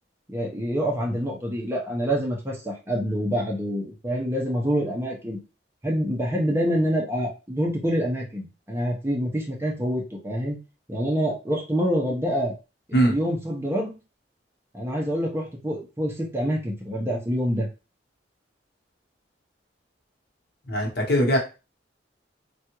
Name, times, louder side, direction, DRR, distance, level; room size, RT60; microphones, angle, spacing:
voice 1, 0.3-5.4 5.8-10.6 10.9-12.5 12.9-14.0 14.7-17.7, equal, 15° right, -2 dB, 0.7 m, -26 dB
voice 2, 20.7-21.4, equal, 60° left, 0 dB, 0.9 m, -21 dB
3.3 x 2.3 x 2.9 m, 0.30 s
head